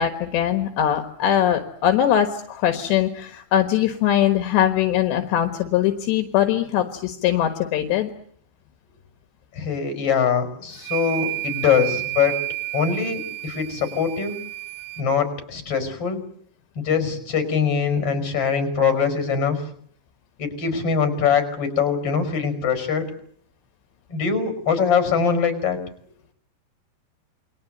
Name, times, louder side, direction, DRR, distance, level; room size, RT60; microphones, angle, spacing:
voice 1, 0.0-8.1, left 10 dB, 75° left, 7 dB, 3.5 m, -21 dB
voice 2, 9.5-12.4 12.7-14.3 15.0-16.2 16.8-19.6 20.4-23.1 24.1-25.8, left 6 dB, 30° left, 8 dB, 5.9 m, -22 dB
sound 1, 10.8-15.1, right 22 dB, 70° right, 3.2 m, -31 dB
29.0 x 22.0 x 7.9 m, 0.64 s
omnidirectional pair, 5.2 m